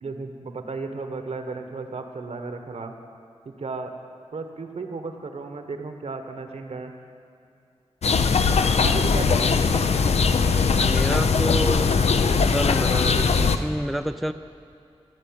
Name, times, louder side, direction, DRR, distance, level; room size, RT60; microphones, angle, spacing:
voice 1, 0.0-2.9 3.4-3.9 4.3-6.9 8.8-9.7, right 4 dB, 75° right, 6 dB, 1.2 m, -34 dB
sound 1, 8.0-13.6, left 5 dB, 75° left, 0.5 m, -20 dB
voice 2, 10.8-14.3, equal, ahead, 10 dB, 0.3 m, -29 dB
15.0 x 6.8 x 8.7 m, 2.5 s
wide cardioid pair, 95°, 11 cm